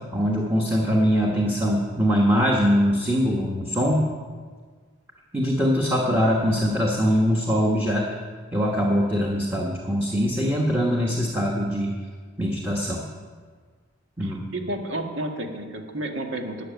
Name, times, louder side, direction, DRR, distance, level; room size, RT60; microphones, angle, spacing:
voice 1, 0.1-4.0 5.3-8.1 8.5-11.9 12.4-13.0 14.2-14.5, equal, 10° right, -2 dB, 1.2 m, -22 dB
voice 2, 14.2-16.7, right 1 dB, 80° right, 3 dB, 1.6 m, -31 dB
12.5 x 6.5 x 9.2 m, 1.6 s
head